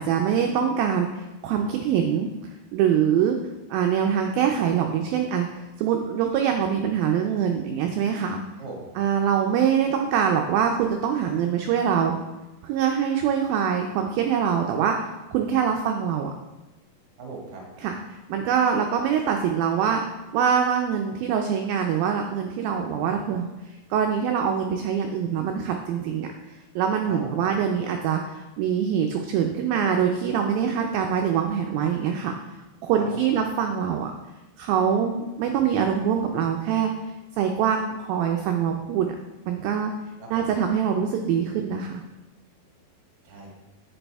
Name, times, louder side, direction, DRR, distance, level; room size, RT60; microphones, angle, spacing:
voice 1, 0.0-2.3 2.7-3.4 3.7-8.4 9.0-12.1 12.6-16.3 17.8-18.0 18.3-20.0 20.3-23.5 23.9-26.3 26.8-32.4 32.8-34.1 34.6-36.9 37.4-39.1 39.5-39.9 40.3-42.0, right 8 dB, 80° right, 3 dB, 2.1 m, -24 dB
voice 2, 8.6-8.9 17.2-17.6 27.1-27.5 32.9-33.4 40.2-40.4 43.2-43.5, right 3 dB, 40° right, -2 dB, 1.5 m, -38 dB
8.2 x 6.8 x 3.4 m, 1.1 s
omnidirectional pair, 4.7 m